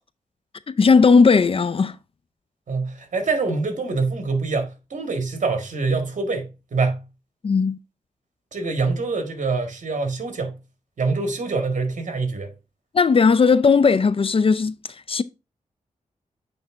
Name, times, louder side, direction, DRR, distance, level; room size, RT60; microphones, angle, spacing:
voice 1, 0.7-1.9 7.4-7.8 12.9-14.8 15.1-15.2, left 5 dB, 40° left, 0.4 m, -16 dB
voice 2, 2.7-7.0 8.5-10.6 11.0-12.5, right 4 dB, 65° right, 1.7 m, -25 dB
8.7 x 3.3 x 3.6 m
cardioid pair, 70°, 14 cm